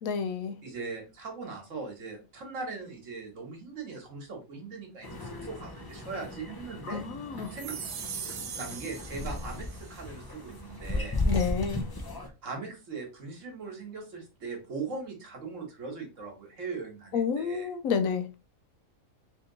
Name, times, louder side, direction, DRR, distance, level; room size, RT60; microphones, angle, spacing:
voice 1, 0.0-0.5 6.9-7.5 11.2-11.8 17.1-18.4, left 6 dB, 90° left, 1.0 m, -30 dB
voice 2, 0.6-7.0 7.5-7.8 8.3-11.2 12.4-17.7, right 4 dB, 70° right, 1.5 m, -40 dB
sound 1, 5.0-12.3, left 2 dB, 30° left, 0.4 m, -36 dB
sound 2, 7.5-10.0, right 7 dB, 85° right, 1.1 m, -40 dB
3.4 x 2.8 x 3.8 m
omnidirectional pair, 1.4 m